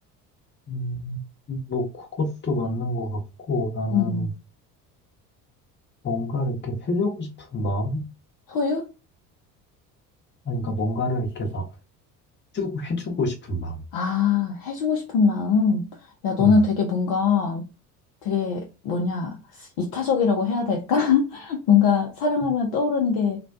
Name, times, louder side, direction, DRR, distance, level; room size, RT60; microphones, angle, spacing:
voice 1, 0.7-1.2 1.5-3.2 3.5-4.3 6.0-8.1 10.4-11.7 12.5-13.8 16.4-16.6, left 1 dB, 25° left, 0.9 m, -27 dB
voice 2, 3.9-4.3 8.5-8.8 13.9-15.9 16.2-17.6 18.2-23.4, left 5 dB, 45° left, 0.6 m, -22 dB
2.5 x 2.1 x 2.3 m
figure-of-eight pair, 60°, 47 cm